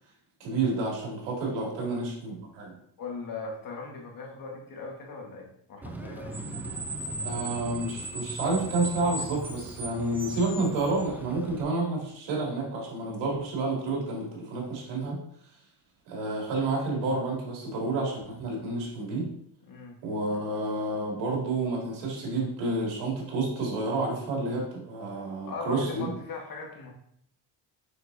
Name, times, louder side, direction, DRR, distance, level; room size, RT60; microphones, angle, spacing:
voice 1, 0.4-2.7 7.2-15.2 16.1-19.3 20.0-26.1, right 2 dB, 80° right, -3 dB, 2.9 m, -30 dB
voice 2, 1.7-2.0 3.0-6.4 19.6-20.0 25.4-26.9, left 4 dB, 50° left, 0 dB, 1.7 m, -39 dB
Screech, 5.8-11.6, right 2 dB, 5° right, 0.5 m, -37 dB
6.9 x 6.0 x 2.8 m, 0.69 s
cardioid pair, 130°, 43 cm